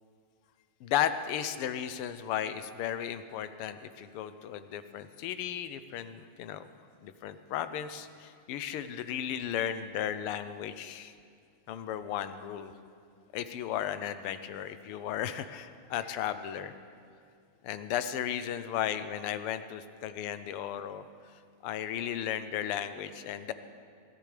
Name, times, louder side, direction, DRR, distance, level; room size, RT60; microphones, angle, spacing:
voice 1, 0.8-6.6 7.0-11.1 11.7-12.7 13.3-16.7 17.6-21.0 21.6-23.5, left 10 dB, 85° left, 11 dB, 1.6 m, -35 dB
21.5 x 14.0 x 3.3 m, 2.3 s
omnidirectional pair, 2.4 m